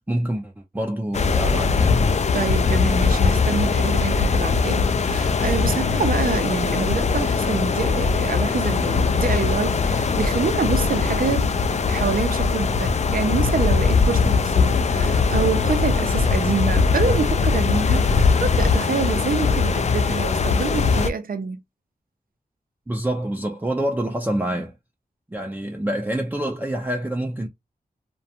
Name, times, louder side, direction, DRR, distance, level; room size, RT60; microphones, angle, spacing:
voice 1, 0.0-2.0 22.9-24.8 25.3-27.5, right 1 dB, 10° right, 0.5 m, -26 dB
sound 1, 1.1-21.1, left 5 dB, 45° left, 0.4 m, -20 dB
voice 2, 2.3-21.6, right 5 dB, 65° right, 0.5 m, -26 dB
2.4 x 2.2 x 2.7 m
cardioid pair, 55°, 16 cm